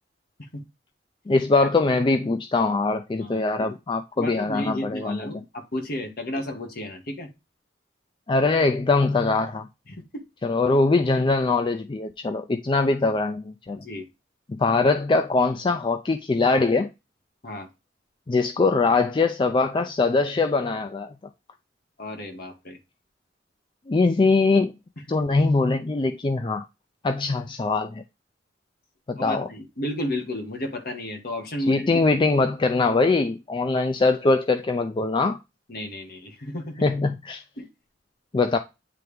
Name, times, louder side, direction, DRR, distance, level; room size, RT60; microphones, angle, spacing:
voice 1, 1.3-5.3 8.3-9.7 10.4-13.8 14.5-16.9 18.3-21.1 23.9-24.7 25.1-26.6 27.0-28.0 29.1-29.5 31.7-35.4 36.8-37.4 38.3-38.6, left 3 dB, 25° left, 0.4 m, -22 dB
voice 2, 3.2-3.8 4.2-7.3 9.9-10.2 13.8-14.0 17.4-17.7 22.0-22.8 25.1-25.3 29.2-31.9 35.7-36.7 37.6-37.7, left 1 dB, 55° left, 1.5 m, -32 dB
9.2 x 3.4 x 3.3 m
head